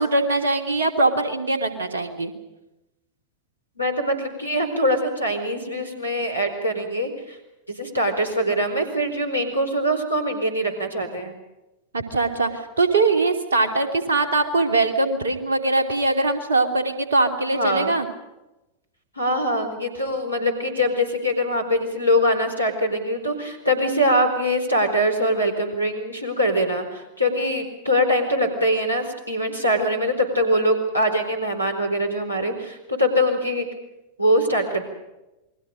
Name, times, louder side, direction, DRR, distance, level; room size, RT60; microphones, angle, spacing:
voice 1, 0.0-2.3 11.9-18.1, right 2 dB, 70° right, 6 dB, 2.9 m, -22 dB
voice 2, 3.8-7.4 7.7-11.3 17.5-18.0 19.2-33.7 34.2-34.9, equal, 85° left, 5 dB, 4.3 m, -23 dB
28.5 x 21.5 x 5.2 m, 0.97 s
figure-of-eight pair, 90°, 0 cm